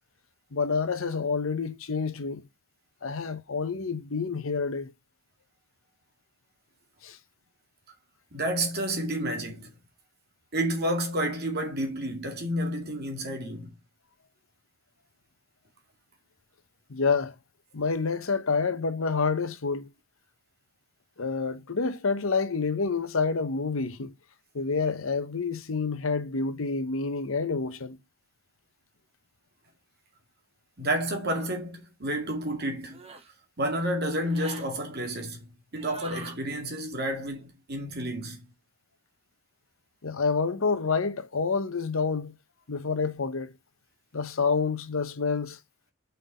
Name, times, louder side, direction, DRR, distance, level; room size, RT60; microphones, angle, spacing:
voice 1, 0.5-2.4 3.0-4.9 7.0-7.2 16.9-17.3 17.7-19.9 21.2-24.1 24.5-28.0 40.0-42.3 42.7-43.5 44.1-45.6, left 4 dB, 75° left, 0.9 m, -28 dB
voice 2, 8.3-9.7 10.5-13.7 30.8-33.0 33.6-38.4, right 1 dB, 50° right, 2.2 m, -30 dB
sound 1, 31.3-31.6 32.9-33.3 34.2-34.7 35.8-36.4, right 3 dB, 30° right, 1.3 m, -44 dB
5.4 x 4.1 x 5.3 m
head